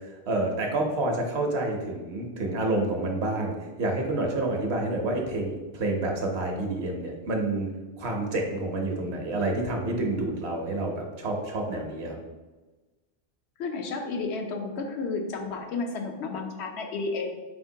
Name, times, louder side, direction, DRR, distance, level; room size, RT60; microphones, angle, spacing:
voice 1, 0.3-7.7 8.0-12.2, right 2 dB, 75° right, 2 dB, 1.0 m, -28 dB
voice 2, 13.6-17.4, left 3 dB, 75° left, 3 dB, 0.9 m, -32 dB
4.3 x 3.6 x 2.7 m, 1.2 s
omnidirectional pair, 1.1 m